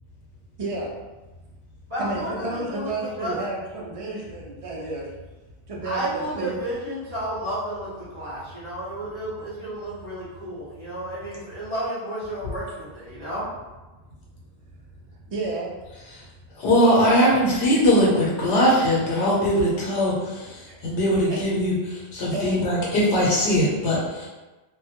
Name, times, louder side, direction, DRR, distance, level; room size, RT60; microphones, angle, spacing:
voice 1, 0.6-0.9 2.0-5.1 5.7-6.6 15.3-15.7 16.8-17.3 20.7-20.8 21.3-21.4 22.3-22.6, right 2 dB, 50° right, -3 dB, 0.4 m, -31 dB
voice 2, 1.9-3.3 5.8-13.4, right 1 dB, 30° right, -9 dB, 0.8 m, -32 dB
voice 3, 16.6-24.3, equal, 85° left, -5 dB, 0.9 m, -21 dB
2.2 x 2.1 x 2.8 m, 1.1 s
omnidirectional pair, 1.1 m